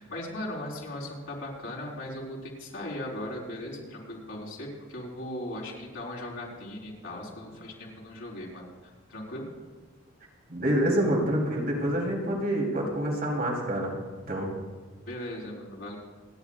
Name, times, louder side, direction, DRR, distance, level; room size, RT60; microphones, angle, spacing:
voice 1, 0.0-9.5 15.0-16.0, left 1 dB, 65° left, -4 dB, 4.3 m, -38 dB
voice 2, 10.5-13.9 14.3-14.5, right 1 dB, 50° right, -2 dB, 3.4 m, -27 dB
28.5 x 10.5 x 2.5 m, 1.4 s
head